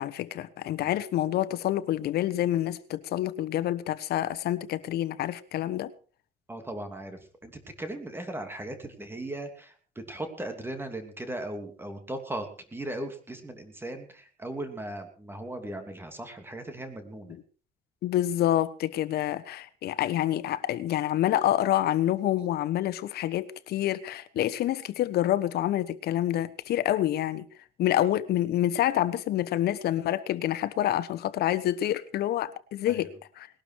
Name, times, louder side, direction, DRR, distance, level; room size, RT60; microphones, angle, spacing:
voice 1, 0.0-5.9 17.3-17.4 18.0-27.4 27.8-33.5, left 12 dB, 70° left, 1.3 m, -27 dB
voice 2, 6.5-9.7 10.1-17.4 32.9-33.1, right 1 dB, 15° right, 3.0 m, -38 dB
20.0 x 12.0 x 4.8 m
cardioid pair, 110°, 17 cm